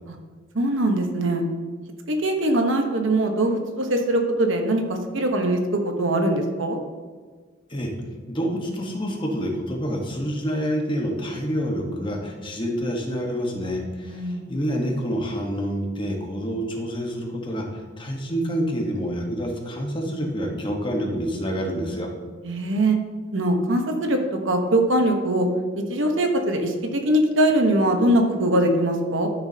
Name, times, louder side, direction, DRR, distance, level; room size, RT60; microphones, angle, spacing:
voice 1, 0.5-1.4 2.1-4.8 5.1-5.6 5.8-6.8 14.1-14.5 22.4-23.0 23.3-24.2 24.4-25.5 25.9-26.7 27.0-29.3, right 1 dB, 70° right, 4 dB, 1.1 m, -21 dB
voice 2, 8.3-22.1, equal, 25° left, 1 dB, 1.2 m, -27 dB
12.5 x 6.7 x 2.8 m, 1.5 s
head